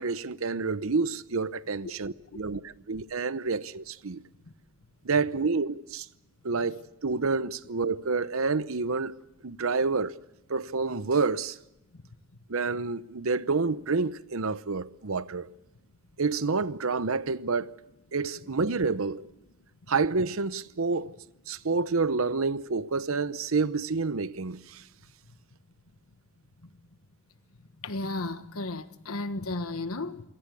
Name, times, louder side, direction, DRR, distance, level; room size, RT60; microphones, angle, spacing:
voice 1, 0.0-4.2 5.0-6.1 6.4-9.2 9.4-10.1 10.5-11.6 12.5-15.5 16.2-17.8 18.1-19.2 19.9-21.1 21.5-24.8, right 4 dB, 75° right, 0.8 m, -28 dB
voice 2, 27.8-30.3, left 2 dB, 90° left, 1.3 m, -34 dB
27.5 x 18.5 x 8.3 m
head